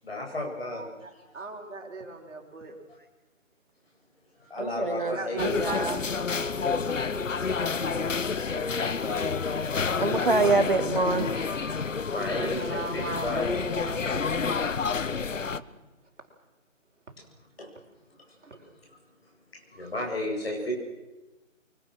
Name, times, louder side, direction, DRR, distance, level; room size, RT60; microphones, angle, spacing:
voice 1, 0.0-0.9 4.4-5.7 12.1-13.5 17.6-17.7 19.7-20.7, left 1 dB, 50° left, 0 dB, 7.5 m, -34 dB
voice 2, 0.7-2.8 4.7-4.8 5.1-9.7 12.4-14.8 17.1-17.2 18.4-18.7, right 2 dB, 60° right, 3 dB, 5.8 m, -40 dB
voice 3, 4.6-6.0 10.0-11.3, right 3 dB, 40° right, 8 dB, 1.3 m, -25 dB
sound 1, 5.4-15.6, left 5 dB, 70° left, 1.1 m, -29 dB
25.5 x 24.0 x 6.3 m, 1.1 s
figure-of-eight pair, 175°, 40 cm